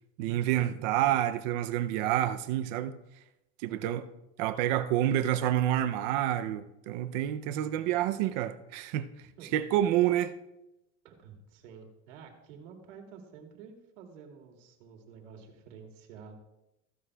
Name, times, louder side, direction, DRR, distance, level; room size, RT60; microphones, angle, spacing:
voice 1, 0.2-2.9 3.6-4.0 4.4-9.1 9.5-10.3, right 12 dB, 40° right, 0.4 m, -28 dB
voice 2, 3.6-4.0 9.4-9.6 11.0-16.4, right 6 dB, 85° right, 2.4 m, -50 dB
15.0 x 11.0 x 2.2 m
supercardioid pair, 180°, 36 cm